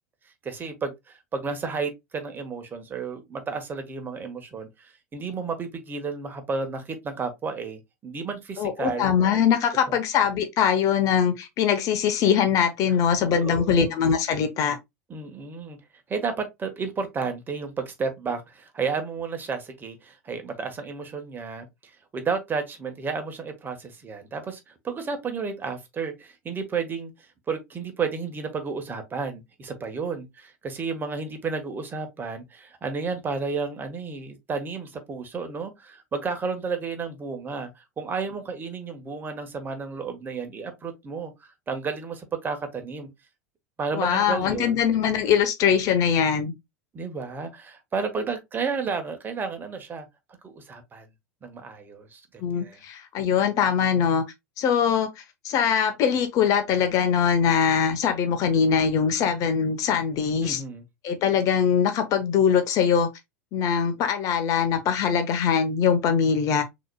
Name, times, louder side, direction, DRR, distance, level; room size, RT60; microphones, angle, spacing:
voice 1, 0.4-9.1 9.9-10.0 12.9-13.0 13.3-14.0 15.1-15.8 16.1-43.1 43.8-44.8 46.9-50.1 50.4-51.1 51.4-52.8 60.4-60.8, right 5 dB, 25° right, 1.3 m, -32 dB
voice 2, 8.6-14.8 44.0-46.5 52.4-54.2 54.6-60.6 61.0-63.1 63.5-66.6, left 7 dB, 40° left, 0.9 m, -22 dB
6.2 x 3.0 x 2.2 m
figure-of-eight pair, 85°, 9 cm